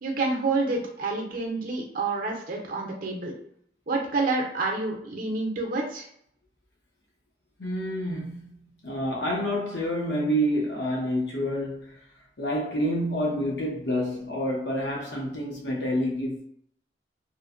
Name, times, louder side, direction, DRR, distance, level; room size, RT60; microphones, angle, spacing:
voice 1, 0.0-3.3 3.9-6.1, right 3 dB, 50° right, 0.6 m, -28 dB
voice 2, 7.6-8.5 8.8-12.0 12.4-16.4, equal, 65° left, 0.8 m, -28 dB
3.1 x 2.1 x 2.5 m
head